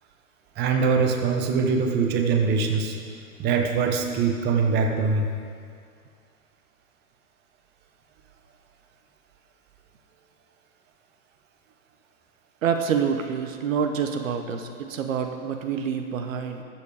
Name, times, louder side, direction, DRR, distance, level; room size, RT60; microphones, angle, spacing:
voice 1, 0.6-3.0 3.4-5.3, right 5 dB, 25° right, 3 dB, 1.0 m, -23 dB
voice 2, 12.6-16.6, right 7 dB, 65° right, 6 dB, 1.0 m, -27 dB
13.0 x 7.5 x 4.9 m, 2.2 s
hypercardioid pair, 115°, 43 cm